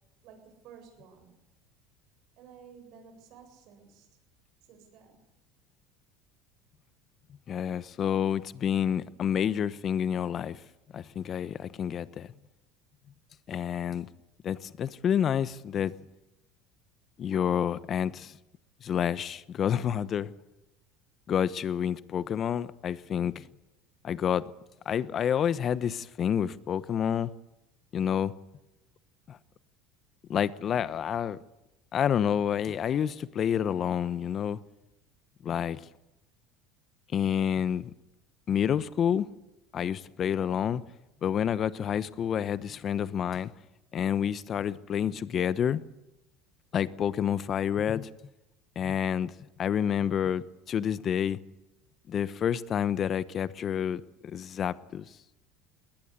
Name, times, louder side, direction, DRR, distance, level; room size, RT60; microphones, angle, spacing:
voice 1, 0.2-1.4 2.4-4.1 4.7-5.2, right 7 dB, 65° right, 7.7 m, -53 dB
voice 2, 7.5-10.6 10.9-12.3 13.5-14.1 14.4-15.9 17.2-18.4 18.8-20.3 21.3-23.5 24.0-24.5 24.8-27.3 27.9-28.3 29.3-29.4 30.3-31.4 31.9-34.6 35.4-35.8 37.1-37.9 38.5-39.3 39.7-40.8 41.2-43.5 43.9-45.8 46.7-48.1 48.7-49.3 49.6-51.4 52.1-55.0, left 9 dB, 45° left, 1.0 m, -29 dB
21.0 x 19.5 x 8.3 m
hypercardioid pair, 80°, 0 cm